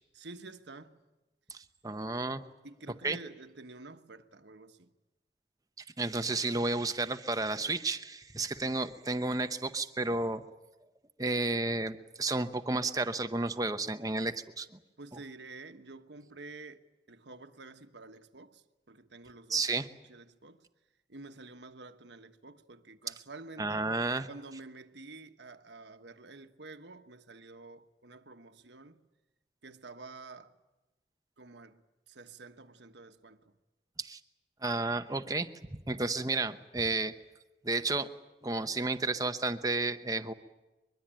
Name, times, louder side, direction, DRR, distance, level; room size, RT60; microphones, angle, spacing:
voice 1, 0.1-1.0 2.6-4.9 15.0-16.8 17.1-19.7 20.1-20.7 21.1-23.9 24.3-29.1 29.6-30.6 31.4-31.8 32.1-33.5, right 3 dB, 75° right, 1.3 m, -49 dB
voice 2, 1.5-2.4 3.0-3.2 6.0-10.4 11.2-14.7 19.5-19.9 23.6-24.3 34.0-34.2 34.6-37.1 37.6-38.1 38.4-40.3, right 3 dB, 20° right, 0.9 m, -32 dB
23.5 x 22.5 x 9.0 m
head